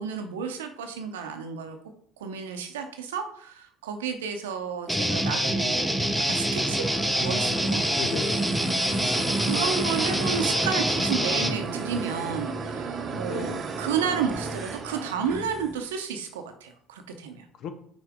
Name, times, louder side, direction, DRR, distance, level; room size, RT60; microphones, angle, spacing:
voice 1, 0.0-1.8 2.2-6.9 7.2-7.8 8.9-17.4, right 6 dB, 80° right, 6 dB, 0.7 m, -32 dB
Guitar, 4.9-11.6, equal, ahead, 0.7 m, -26 dB
sound 1, 6.1-15.8, right 4 dB, 45° right, 0.8 m, -34 dB
voice 2, 7.9-8.6 8.9-9.5 13.3-13.6 17.6-17.7, left 6 dB, 60° left, 9 dB, 0.7 m, -36 dB
5.9 x 4.3 x 3.6 m, 0.64 s
hypercardioid pair, 60°, 0 cm